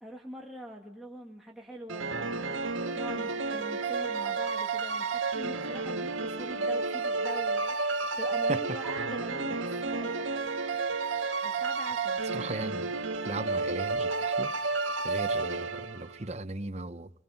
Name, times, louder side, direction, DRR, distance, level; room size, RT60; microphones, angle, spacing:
voice 1, 0.0-10.9 11.4-12.7 13.3-13.5, right 1 dB, ahead, -2 dB, 1.8 m, -44 dB
sound 1, 1.9-16.2, right 4 dB, 85° right, 1.7 m, -31 dB
voice 2, 12.3-12.9 13.2-14.5 15.0-17.1, right 2 dB, 35° right, 10 dB, 0.8 m, -37 dB
29.0 x 20.5 x 5.7 m, 0.86 s
head